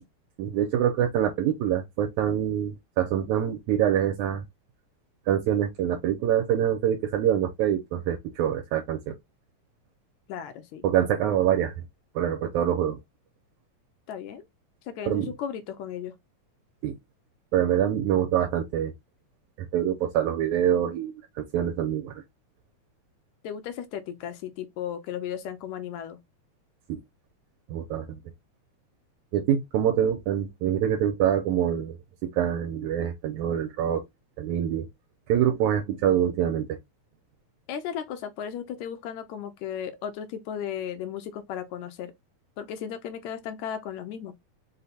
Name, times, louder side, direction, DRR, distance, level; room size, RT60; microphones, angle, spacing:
voice 1, 0.4-4.4 5.3-9.1 10.8-11.7 12.2-13.0 15.1-15.3 16.8-17.0 17.5-18.9 19.7-22.1 26.9-27.0 27.7-28.1 29.3-32.0 32.2-34.0 34.4-34.9 35.3-36.8, right 10 dB, 80° right, 2.0 m, -25 dB
voice 2, 10.3-10.8 14.1-14.4 14.8-16.1 23.4-26.2 37.7-42.1 42.6-44.4, left 9 dB, 80° left, 1.8 m, -35 dB
5.3 x 2.2 x 4.0 m
omnidirectional pair, 3.5 m